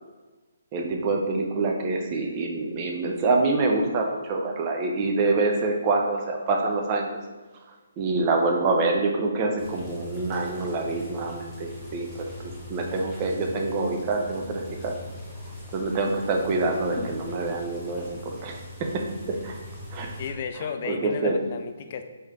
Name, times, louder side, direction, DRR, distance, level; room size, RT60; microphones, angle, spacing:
voice 1, 0.7-7.2 8.0-14.9 15.7-19.6 19.9-20.1 20.8-21.3, right 3 dB, 30° right, 1 dB, 0.6 m, -26 dB
sound 1, 9.6-20.3, left 1 dB, ahead, 1.1 m, -41 dB
voice 2, 20.2-22.0, left 6 dB, 45° left, 8 dB, 0.4 m, -33 dB
4.2 x 3.3 x 3.6 m, 1.2 s
figure-of-eight pair, 140°, 0 cm